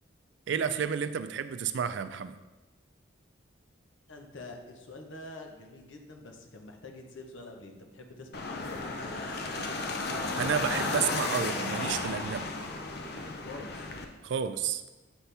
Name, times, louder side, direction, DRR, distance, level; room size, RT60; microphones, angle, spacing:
voice 1, 0.5-2.4 10.4-12.5 14.2-14.8, right 7 dB, 70° right, 12 dB, 0.3 m, -31 dB
voice 2, 4.1-9.7 13.3-13.9, left 2 dB, 75° left, 2 dB, 0.9 m, -46 dB
sound 1, 8.3-14.0, left 3 dB, 55° left, 0.6 m, -33 dB
7.8 x 4.2 x 3.4 m, 1.1 s
head